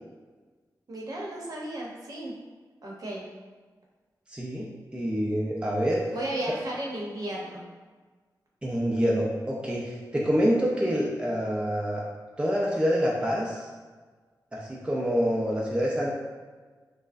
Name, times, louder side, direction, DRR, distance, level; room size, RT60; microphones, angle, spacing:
voice 1, 0.9-2.3 2.8-3.2 6.1-7.6, right 1 dB, 60° right, -3 dB, 0.8 m, -34 dB
voice 2, 4.3-6.1 8.6-12.0 12.4-13.7 14.5-16.1, equal, 15° right, -3 dB, 0.5 m, -26 dB
5.7 x 2.1 x 2.5 m, 1.4 s
wide cardioid pair, 110°, 7 cm